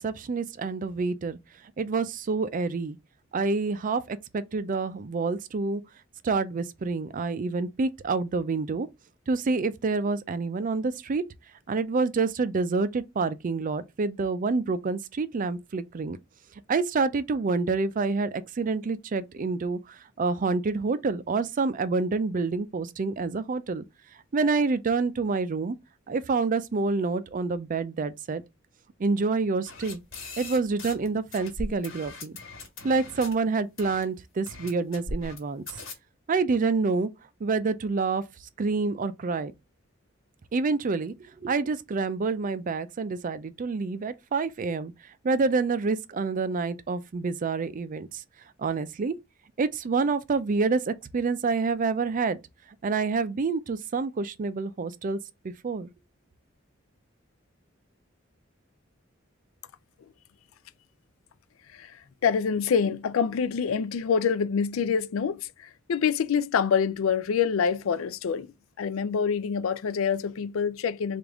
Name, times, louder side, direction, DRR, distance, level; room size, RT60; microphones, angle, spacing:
voice 1, 0.0-1.4 1.8-3.0 3.3-5.8 6.2-8.9 9.3-11.2 11.7-16.2 16.7-23.8 24.3-25.8 26.1-28.4 29.0-30.0 30.4-32.3 32.8-35.6 36.3-37.1 37.4-38.2 38.6-39.5 40.5-41.1 41.4-44.9 45.2-48.2 48.6-49.2 49.6-52.4 52.8-55.2 55.4-55.9, right 4 dB, 40° right, 0.4 m, -27 dB
sound 1, 29.6-31.1 31.3-33.3 33.8-34.0 34.5-35.4 35.7-35.9, left 2 dB, 70° left, 1.6 m, -39 dB
voice 2, 61.7-68.5 68.8-71.2, left 6 dB, 85° left, 0.4 m, -26 dB
3.4 x 2.5 x 3.5 m
head